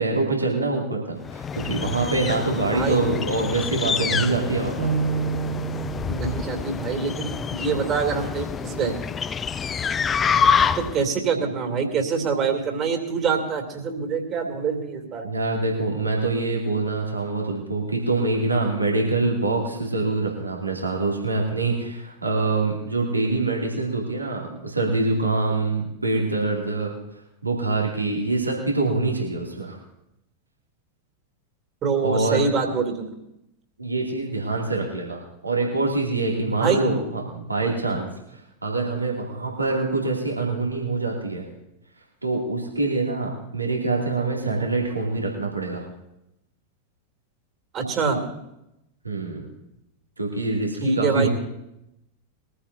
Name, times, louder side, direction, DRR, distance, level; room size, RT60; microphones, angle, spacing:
voice 1, 0.0-4.9 15.2-27.0 27.4-29.8 32.0-32.4 33.8-38.1 38.6-41.5 42.2-45.9 49.0-49.5 50.2-51.3, right 3 dB, 80° right, -2 dB, 2.5 m, -25 dB
sound 1, 1.2-11.1, left 6 dB, 20° left, 0.4 m, -27 dB
voice 2, 2.6-3.0 6.1-9.0 10.7-15.3 31.8-33.1 36.4-36.8 47.7-48.2 50.8-51.3, right 5 dB, 30° right, 4 dB, 2.6 m, -25 dB
sound 2, 4.8-8.9, right 6 dB, 65° right, 3.0 m, -31 dB
22.0 x 14.5 x 2.7 m, 0.85 s
figure-of-eight pair, 90°, 0 cm